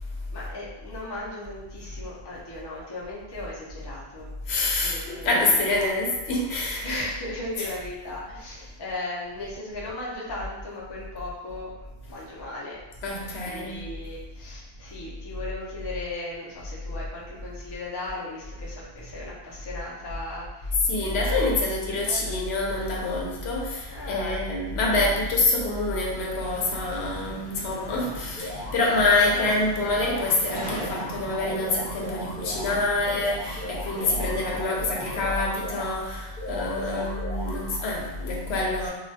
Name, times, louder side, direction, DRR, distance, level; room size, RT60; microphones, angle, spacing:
voice 1, 0.3-5.9 6.8-11.7 12.1-12.8 13.4-21.7 22.0-22.4 23.9-24.4 29.2-29.5 36.8-37.1 38.8-38.9, left 2 dB, 35° left, -6 dB, 0.5 m, -37 dB
voice 2, 4.5-7.1 13.0-13.8 20.9-38.9, left 2 dB, 85° left, -2 dB, 0.8 m, -26 dB
sound 1, 26.4-35.3, right 2 dB, 30° right, 0.6 m, -41 dB
sound 2, 28.4-29.6 30.0-32.8 33.2-36.0 36.4-37.9, left 1 dB, 60° left, 0.9 m, -38 dB
2.3 x 2.1 x 2.6 m, 1.0 s
omnidirectional pair, 1.1 m